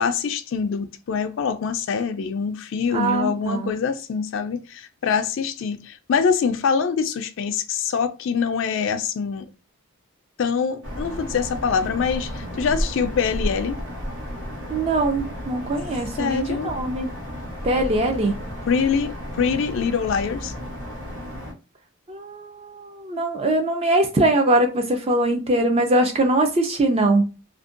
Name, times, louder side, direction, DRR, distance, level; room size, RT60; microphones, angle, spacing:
voice 1, 0.0-9.5 10.4-13.8 16.2-16.8 18.7-20.5, left 6 dB, 60° left, 0.3 m, -24 dB
voice 2, 2.9-3.7 14.7-17.1 17.6-18.4 22.1-27.3, right 2 dB, 25° right, 0.4 m, -22 dB
sound 1, 10.8-21.5, equal, 75° right, 1.0 m, -32 dB
2.5 x 2.1 x 2.4 m
head